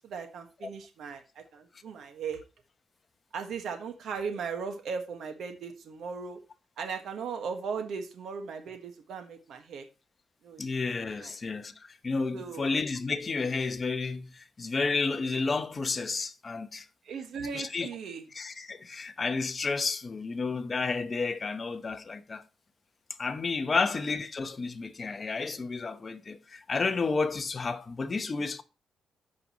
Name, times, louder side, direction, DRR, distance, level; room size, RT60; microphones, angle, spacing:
voice 1, 0.0-2.4 3.3-6.4 6.8-9.9 10.4-10.6 11.2-11.4 12.3-12.7 17.0-18.2, right 5 dB, 70° right, 1.5 m, -37 dB
voice 2, 10.6-11.7 12.0-16.9 17.5-17.9 18.3-22.4 23.2-28.6, left 4 dB, 30° left, 1.0 m, -31 dB
14.0 x 5.3 x 3.0 m
cardioid pair, 120°, 0 cm